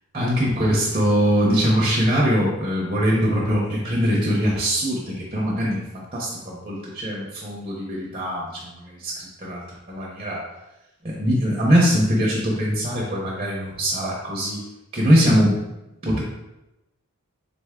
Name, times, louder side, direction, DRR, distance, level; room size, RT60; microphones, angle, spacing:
voice 1, 0.1-10.4 11.0-14.6 14.9-15.5 16.0-16.2, equal, 25° right, -4 dB, 0.7 m, -22 dB
3.8 x 3.3 x 3.6 m, 0.97 s
head